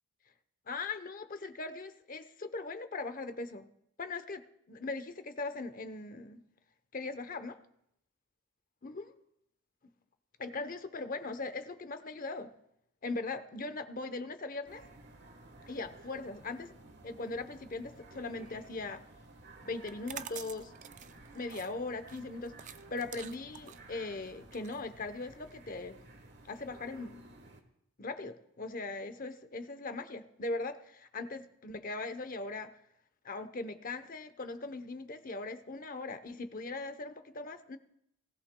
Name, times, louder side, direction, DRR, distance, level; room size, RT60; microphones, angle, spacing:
voice 1, 0.7-3.7 4.0-4.4 4.7-6.4 6.9-7.6 8.8-9.1 10.4-12.5 13.0-14.8 15.7-16.7 17.0-19.0 19.6-20.7 21.3-26.0 26.5-27.2 28.0-32.8 33.2-37.8, left 3 dB, 40° left, 10 dB, 0.8 m, -40 dB
sound 1, 14.6-27.6, right 2 dB, 50° right, 1.3 m, -55 dB
sound 2, 19.8-25.5, right 9 dB, 35° right, 0.4 m, -48 dB
18.5 x 16.5 x 2.2 m, 0.77 s
head